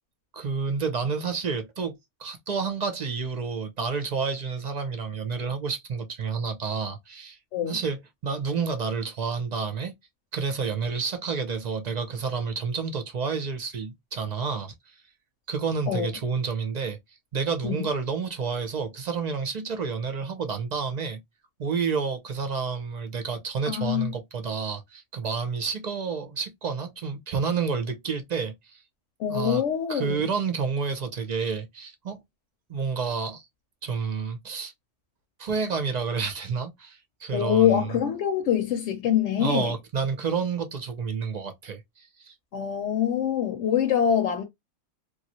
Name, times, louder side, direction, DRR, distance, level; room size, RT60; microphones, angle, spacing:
voice 1, 0.3-7.4 7.7-9.9 10.3-14.9 15.5-17.0 17.3-21.2 21.6-28.8 29.3-29.6 29.9-32.2 32.7-33.5 33.8-34.7 35.4-38.0 39.4-42.3, right 5 dB, 50° right, 0.6 m, -30 dB
voice 2, 23.7-24.1 29.2-30.2 37.3-39.7 42.5-44.4, left 9 dB, 80° left, 0.9 m, -24 dB
3.0 x 2.4 x 2.8 m
omnidirectional pair, 1.2 m